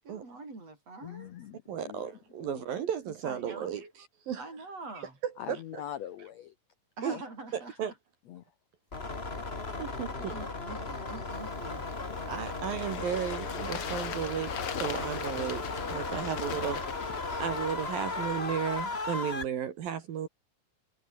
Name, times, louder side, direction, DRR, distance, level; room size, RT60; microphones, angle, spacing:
voice 1, 0.1-1.3 3.2-3.9 4.4-5.2 7.0-7.9 10.1-12.0 16.2-16.6, right 3 dB, 40° right, 8.8 m, -45 dB
voice 2, 1.0-2.1 2.4-2.6 5.4-6.5 7.1-7.2 8.3-8.4 12.1-12.2 14.9-15.0 16.2-16.3 17.0-17.4, left 11 dB, 85° left, 1.5 m, -43 dB
voice 3, 1.7-4.4 5.0-5.8 7.0-7.2 7.5-7.9 9.8-10.4 12.3-15.6 15.9-16.8 17.4-20.3, right 9 dB, 65° right, 3.7 m, -34 dB
sound 1, 8.9-19.4, left 3 dB, 20° left, 2.0 m, -36 dB
Bird / Water, 11.3-18.0, left 8 dB, 50° left, 1.8 m, -41 dB
omnidirectional pair, 4.5 m